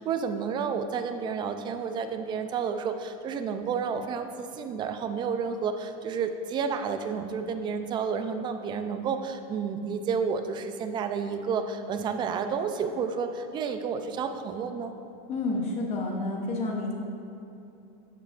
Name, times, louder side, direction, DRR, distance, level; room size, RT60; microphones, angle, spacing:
voice 1, 0.0-14.9, right 6 dB, 25° right, 7 dB, 0.4 m, -31 dB
voice 2, 15.3-16.9, left 2 dB, 35° left, 0 dB, 0.9 m, -29 dB
11.0 x 8.3 x 2.5 m, 2.8 s
supercardioid pair, 150°, 20 cm